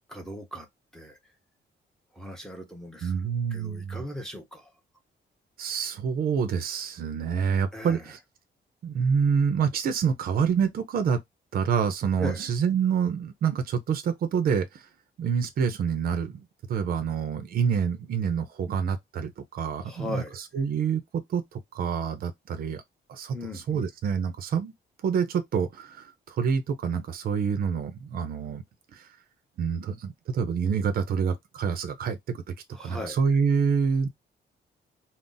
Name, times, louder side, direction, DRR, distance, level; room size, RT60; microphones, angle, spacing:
voice 1, 0.1-0.7 0.9-1.2 2.1-3.2 3.5-4.7 7.7-8.1 12.2-12.5 19.8-20.4 23.3-23.9 32.7-33.2, left 1 dB, 5° left, 0.7 m, -38 dB
voice 2, 3.0-4.0 5.6-8.2 8.8-11.2 11.5-14.7 15.2-16.4 16.7-20.2 20.5-21.4 21.7-22.8 23.1-23.3 23.7-24.7 25.0-28.6 29.6-32.4 32.8-34.2, right 6 dB, 55° right, 0.5 m, -27 dB
2.5 x 2.0 x 3.7 m
wide cardioid pair, 165°, 19 cm